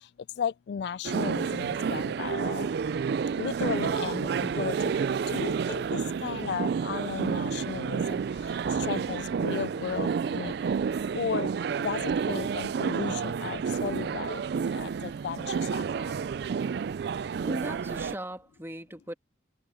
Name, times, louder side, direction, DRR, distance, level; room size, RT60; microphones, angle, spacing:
voice 1, 0.4-2.7 3.4-4.7 5.3-8.2 8.9-10.5 11.1-11.5 11.8-14.4 14.7-15.8, left 7 dB, 60° left, 0.3 m, -34 dB
sound 1, 1.0-18.2, right 6 dB, 60° right, 0.3 m, -30 dB
voice 2, 17.4-19.1, right 1 dB, 15° right, 2.4 m, -38 dB
open air
head